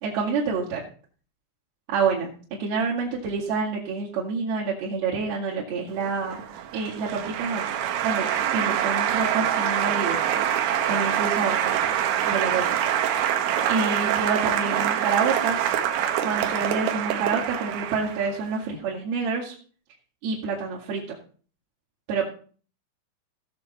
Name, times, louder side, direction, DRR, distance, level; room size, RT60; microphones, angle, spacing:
voice 1, 0.0-0.8 1.9-2.3 2.6-6.4 6.7-7.6 8.0-8.3 8.5-10.2 10.9-12.0 12.2-12.6 13.7-15.7 16.2-19.5 20.2-21.2 22.1-22.3, right 5 dB, 60° right, -6 dB, 3.5 m, -27 dB
Applause, 6.0-18.4, right 10 dB, 80° right, 3.7 m, -25 dB
17.5 x 6.9 x 4.2 m, 0.42 s
omnidirectional pair, 5.7 m